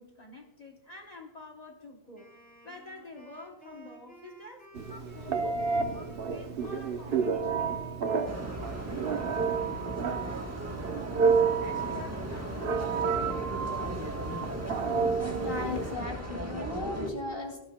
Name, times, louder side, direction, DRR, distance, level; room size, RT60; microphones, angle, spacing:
voice 1, 0.0-2.4 2.6-8.0 11.6-14.0, left 3 dB, 40° left, 1 dB, 1.2 m, -48 dB
Wind instrument woodwind instrument, 2.1-10.5, equal, 10° left, 4.3 m, -54 dB
Telephone, 4.7-15.9, right 5 dB, 65° right, 1.1 m, -30 dB
sound 1, 8.3-17.1, right 1 dB, 15° right, 1.2 m, -37 dB
voice 2, 15.3-17.6, left 3 dB, 65° left, 3 dB, 2.6 m, -36 dB
18.0 x 11.5 x 2.2 m, 1.0 s
omnidirectional pair, 1.1 m